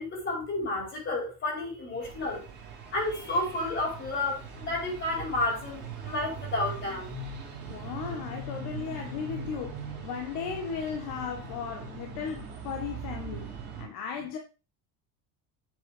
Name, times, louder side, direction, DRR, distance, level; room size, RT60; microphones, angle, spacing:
voice 1, 0.0-2.4 2.9-7.1, left 2 dB, 30° left, 4.3 m, -31 dB
sound 1, 2.0-13.8, right 4 dB, 25° right, 3.2 m, -41 dB
voice 2, 7.7-14.4, left 7 dB, 65° left, 1.5 m, -36 dB
8.1 x 6.9 x 5.0 m
cardioid pair, 180°, 39 cm